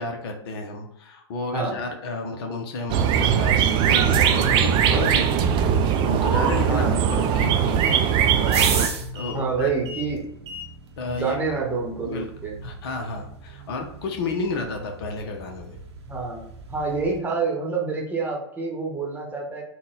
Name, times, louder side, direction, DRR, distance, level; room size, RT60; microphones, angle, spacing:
voice 1, 0.0-8.1 8.3-8.7 9.1-9.7 11.0-11.4 12.0-12.3 12.6-15.8, left 3 dB, 60° left, 3 dB, 0.7 m, -32 dB
sound 1, 2.9-8.9, right 8 dB, 35° right, 0.4 m, -20 dB
voice 2, 6.7-7.0 9.3-10.2 11.0-12.5 16.1-19.6, right 4 dB, 10° right, -1 dB, 1.0 m, -27 dB
sound 2, 7.1-17.2, right 4 dB, 70° right, 0.7 m, -36 dB
3.9 x 2.2 x 3.7 m, 0.78 s
hypercardioid pair, 100°, 14 cm